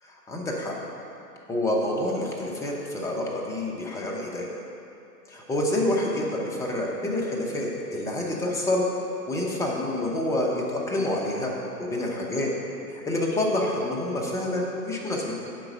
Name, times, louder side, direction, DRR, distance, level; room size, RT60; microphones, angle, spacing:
voice 1, 0.0-0.7 1.5-4.5 5.3-8.8 9.3-12.5 12.9-15.3, left 1 dB, 5° left, -2 dB, 0.7 m, -28 dB
7.8 x 4.8 x 6.2 m, 2.9 s
hypercardioid pair, 115°, 48 cm